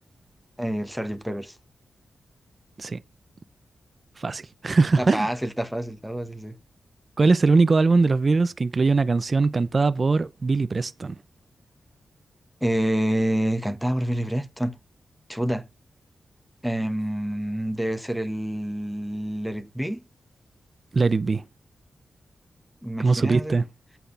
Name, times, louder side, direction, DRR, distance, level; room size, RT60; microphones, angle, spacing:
voice 1, 0.6-1.6 5.0-6.6 12.6-14.8 15.3-15.7 16.6-20.0 22.8-23.6, right 1 dB, ahead, 1.1 m, -27 dB
voice 2, 4.2-5.3 7.2-11.2 20.9-21.4 23.0-23.6, right 3 dB, 40° right, 0.5 m, -21 dB
8.3 x 6.0 x 5.5 m
wide cardioid pair, 90°, 0 cm